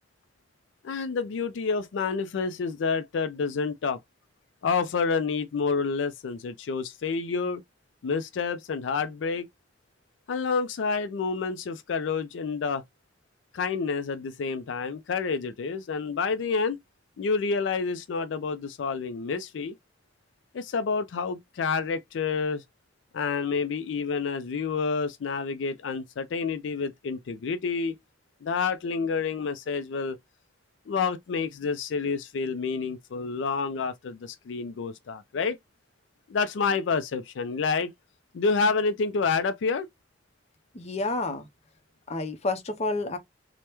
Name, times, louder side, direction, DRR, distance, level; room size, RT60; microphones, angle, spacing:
voice 1, 0.8-4.0 4.6-7.6 8.0-9.5 10.3-12.8 13.5-16.8 17.2-19.7 20.5-22.6 23.1-28.0 28.4-30.2 30.9-35.6 36.3-37.9 38.3-39.9, left 5 dB, 80° left, 0.4 m, -28 dB
voice 2, 40.7-41.5 42.1-43.2, left 2 dB, 35° left, 0.6 m, -29 dB
3.3 x 2.1 x 2.9 m
head